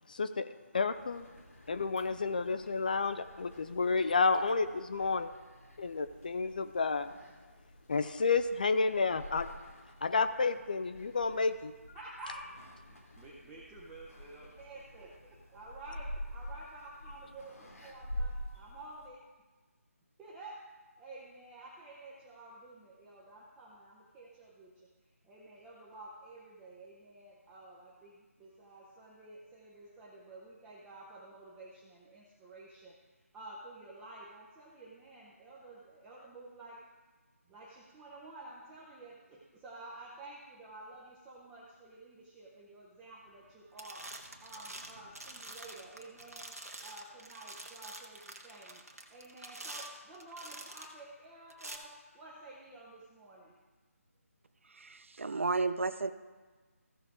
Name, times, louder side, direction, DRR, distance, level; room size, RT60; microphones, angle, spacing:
voice 1, 0.1-1.3 1.7-5.3 5.8-7.1 7.9-9.5 10.0-11.7, left 4 dB, 35° left, 11 dB, 0.4 m, -30 dB
sound 1, 0.9-19.1, equal, 80° left, 2.0 m, -47 dB
voice 2, 11.9-12.6 12.9-19.2 20.2-20.7 21.0-24.9 25.2-36.9 37.5-44.1 44.4-48.8 49.1-53.6, right 2 dB, 5° right, -5 dB, 0.7 m, -51 dB
sound 2, 43.3-43.5 43.8-51.0 51.5-51.8, right 2 dB, 75° right, 1.5 m, -47 dB
voice 3, 54.7-56.1, right 3 dB, 55° right, 13 dB, 0.6 m, -32 dB
15.0 x 6.5 x 3.5 m, 1.4 s
figure-of-eight pair, 155°, 8 cm